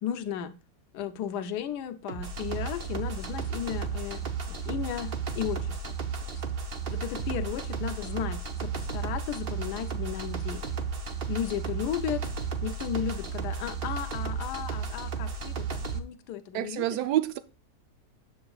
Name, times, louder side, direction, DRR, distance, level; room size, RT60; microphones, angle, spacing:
voice 1, 0.0-0.5 0.9-4.2 4.5-6.0 6.9-10.6 11.3-12.2 12.6-16.8, left 9 dB, 75° left, 1.2 m, -34 dB
sound 1, 2.1-16.0, right 5 dB, 50° right, 0.7 m, -33 dB
voice 2, 16.5-17.4, right 13 dB, 75° right, 1.2 m, -27 dB
7.8 x 7.3 x 2.3 m
omnidirectional pair, 1.8 m